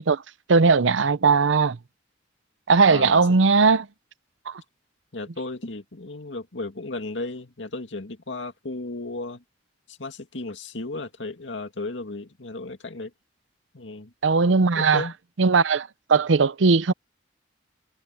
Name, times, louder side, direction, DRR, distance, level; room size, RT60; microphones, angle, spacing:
voice 1, 0.5-1.8 2.7-3.9 4.5-4.6 14.2-15.1 15.4-16.9, right 4 dB, 80° right, 0.6 m, -19 dB
voice 2, 2.9-3.2 5.1-9.4 9.9-13.1 13.7-14.1 14.6-15.1, left 2 dB, 70° left, 2.2 m, -34 dB
head